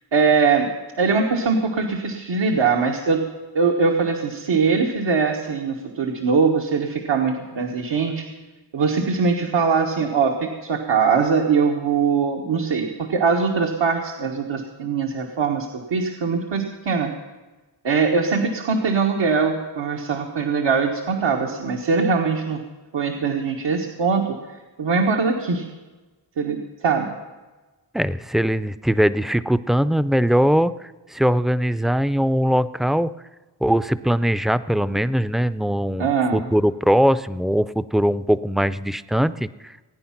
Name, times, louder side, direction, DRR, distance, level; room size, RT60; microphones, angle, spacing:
voice 1, 0.1-0.7 1.0-3.2 3.5-8.2 8.7-17.1 17.8-22.6 22.9-24.4 24.8-25.6 26.4-27.1 36.0-36.5, right 5 dB, 90° right, 1 dB, 1.4 m, -21 dB
voice 2, 27.9-33.1 33.6-36.1 36.3-39.7, equal, ahead, 13 dB, 0.3 m, -21 dB
18.5 x 9.5 x 5.8 m, 1.2 s
wide cardioid pair, 95°, 43 cm